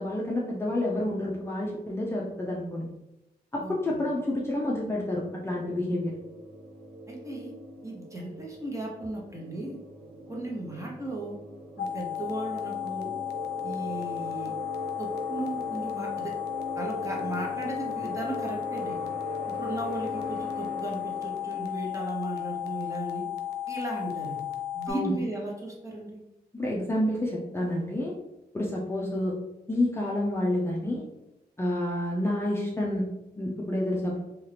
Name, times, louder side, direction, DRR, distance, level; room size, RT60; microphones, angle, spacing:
voice 1, 0.0-2.9 3.5-6.1 24.9-25.1 26.5-28.1 28.5-29.3 29.7-31.0 31.6-33.0 33.4-34.2, left 1 dB, 15° left, -4 dB, 0.5 m, -29 dB
voice 2, 3.6-4.0 7.1-7.5 7.8-9.8 10.3-11.4 11.8-13.2 13.6-14.5 15.0-16.3 16.7-19.0 19.5-23.2 23.7-24.4 24.7-26.2, right 1 dB, 20° right, -2 dB, 1.0 m, -36 dB
sound 1, 5.1-21.6, right 1 dB, 75° right, 0.8 m, -41 dB
sound 2, 11.8-24.9, left 11 dB, 90° left, 0.4 m, -34 dB
2.7 x 2.4 x 3.3 m, 0.91 s
cardioid pair, 70°, 17 cm